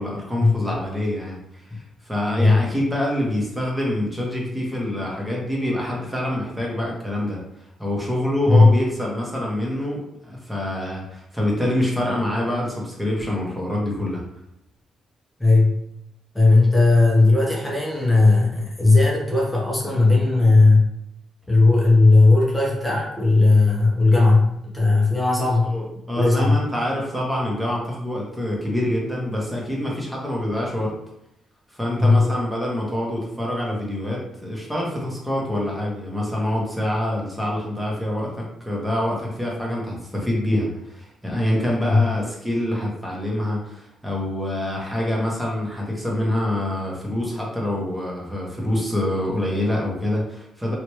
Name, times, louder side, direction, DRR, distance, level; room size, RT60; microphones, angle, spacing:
voice 1, 0.0-1.6 2.0-7.4 7.8-14.2 25.7-30.9 31.7-50.8, left 1 dB, 5° right, -3 dB, 1.2 m, -26 dB
voice 2, 8.5-8.8 15.4-15.8 16.3-20.9 21.5-25.7 26.2-26.6 32.0-32.3 41.8-42.0, left 3 dB, 10° left, -3 dB, 0.9 m, -16 dB
3.1 x 3.0 x 3.1 m, 0.80 s
cardioid pair, 90°, 0 cm